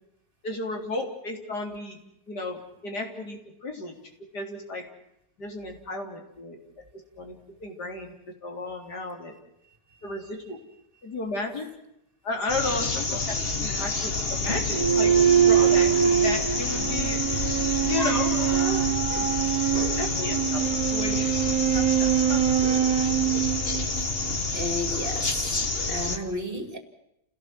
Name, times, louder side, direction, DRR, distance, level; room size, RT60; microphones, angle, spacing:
voice 1, 0.4-2.0 2.3-3.9 4.3-4.8 5.4-6.6 7.2-7.3 7.6-8.1 8.4-9.3 10.0-10.6 11.0-11.7 12.2-13.3 13.6-19.3 20.0-20.6 20.9-22.4 22.7-23.2, left 2 dB, 80° left, 3 dB, 4.2 m, -34 dB
sound 1, 12.5-26.2, left 3 dB, 35° left, 1.8 m, -28 dB
sound 2, 14.7-24.4, right 10 dB, 60° right, 1.4 m, -24 dB
voice 2, 24.5-25.3 25.9-26.8, left 1 dB, 30° right, 7 dB, 2.8 m, -32 dB
29.0 x 17.0 x 7.7 m, 0.83 s
omnidirectional pair, 1.7 m